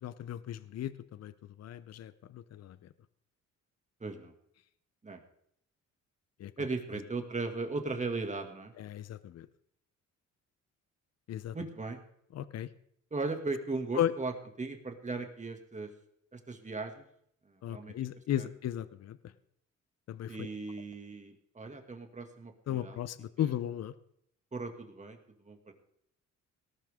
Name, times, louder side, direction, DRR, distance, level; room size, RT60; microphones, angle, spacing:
voice 1, 0.0-1.3 1.6-2.8 6.4-6.5 8.8-9.5 11.3-11.6 12.3-12.7 13.9-14.1 17.6-19.2 20.1-20.5 22.7-23.9, left 11 dB, 60° left, 15 dB, 0.7 m, -35 dB
voice 2, 4.0-4.3 5.0-5.2 6.6-8.7 11.5-12.0 13.1-14.3 14.6-15.9 16.3-17.0 17.5-18.0 18.4-18.5 20.3-23.0 23.4-23.5 24.5-25.2 25.4-25.7, right 3 dB, 25° right, 5 dB, 2.2 m, -37 dB
18.5 x 12.0 x 3.7 m, 0.70 s
cardioid pair, 90°, 30 cm